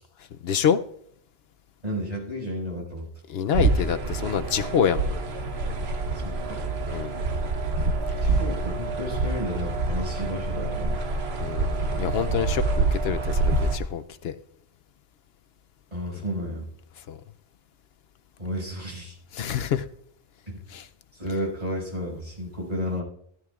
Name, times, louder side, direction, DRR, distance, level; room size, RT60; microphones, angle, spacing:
voice 1, 0.4-0.8 3.3-5.1 6.9-7.2 8.3-8.4 11.4-14.3 16.1-16.2 17.1-17.2 19.3-19.8 20.7-20.9, left 8 dB, 75° left, 10 dB, 0.8 m, -27 dB
voice 2, 1.8-3.1 6.1-6.6 8.2-11.0 15.9-16.7 18.4-19.2 20.5-20.6 21.1-23.0, equal, 40° right, -3 dB, 6.3 m, -32 dB
sound 1, 3.5-13.8, right 3 dB, 75° right, 1.3 m, -26 dB
16.5 x 12.5 x 2.4 m, 0.67 s
omnidirectional pair, 1.1 m